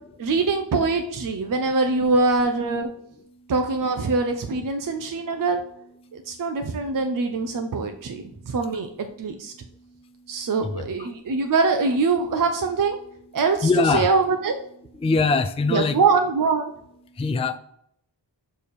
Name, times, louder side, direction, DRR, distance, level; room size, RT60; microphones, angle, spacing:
voice 1, 0.2-2.9 3.5-5.6 6.1-9.5 10.3-13.0 13.3-14.6 15.7-16.7, right 4 dB, 45° right, 5 dB, 0.6 m, -23 dB
voice 2, 13.6-14.1 14.9-16.0 17.2-17.6, left 4 dB, 15° left, 10 dB, 0.3 m, -22 dB
6.7 x 3.4 x 4.2 m, 0.71 s
wide cardioid pair, 80°, 45 cm